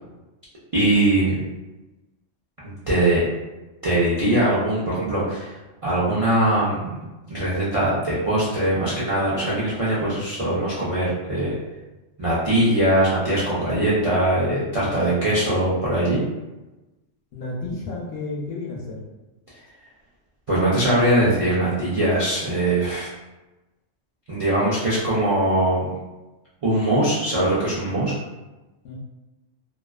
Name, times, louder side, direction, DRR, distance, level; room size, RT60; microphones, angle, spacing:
voice 1, 0.7-1.4 2.6-3.2 3.8-5.5 5.8-7.0 7.3-11.6 12.2-16.2 20.5-23.1 24.3-25.9 26.6-28.1, right 1 dB, 50° right, -9 dB, 0.4 m, -21 dB
voice 2, 17.3-19.0 28.8-28.9, left 2 dB, 65° left, -3 dB, 0.7 m, -31 dB
2.3 x 2.3 x 2.2 m, 1.1 s
omnidirectional pair, 1.3 m